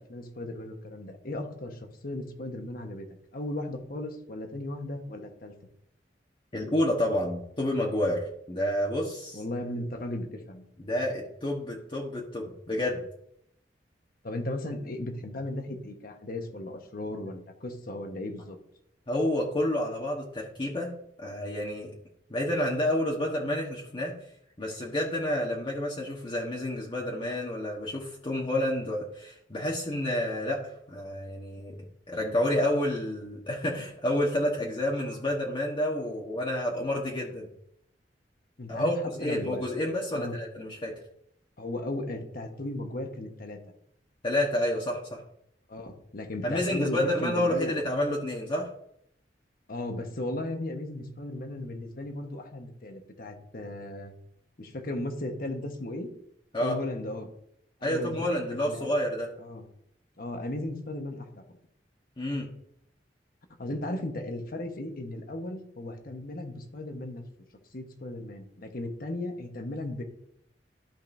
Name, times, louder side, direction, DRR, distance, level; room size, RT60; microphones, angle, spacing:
voice 1, 0.0-3.1 3.3-5.5 9.3-10.6 14.2-18.6 38.6-38.9 39.2-39.7 40.1-40.4 41.6-43.6 45.7-47.7 49.7-54.1 54.6-56.1 56.6-57.3 57.8-58.9 59.4-59.6 60.2-61.4 63.6-67.2 67.7-70.0, left 1 dB, 55° left, 5 dB, 1.2 m, -36 dB
voice 2, 6.5-9.4 10.8-13.0 19.1-20.9 21.2-21.9 22.3-24.2 24.6-31.8 32.1-37.5 38.7-40.9 44.2-45.2 46.4-48.7 56.5-56.8 57.8-59.3 62.2-62.5, left 1 dB, 30° left, -3 dB, 1.3 m, -29 dB
13.0 x 5.3 x 2.7 m, 0.73 s
head